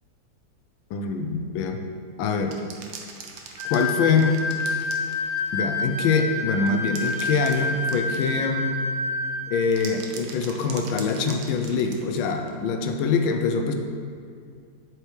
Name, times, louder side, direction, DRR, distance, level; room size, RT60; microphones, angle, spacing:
voice 1, 0.9-1.8 2.2-2.6 3.7-4.4 5.5-8.8 9.5-13.7, left 5 dB, 90° left, 5 dB, 1.4 m, -24 dB
sound 1, 2.4-5.6 6.7-8.5 9.6-12.5 13.2-13.3, right 5 dB, 75° right, 1.4 m, -42 dB
sound 2, 3.6-9.6, left 3 dB, 25° right, 0.8 m, -28 dB
7.4 x 4.7 x 3.2 m, 2.3 s
omnidirectional pair, 2.1 m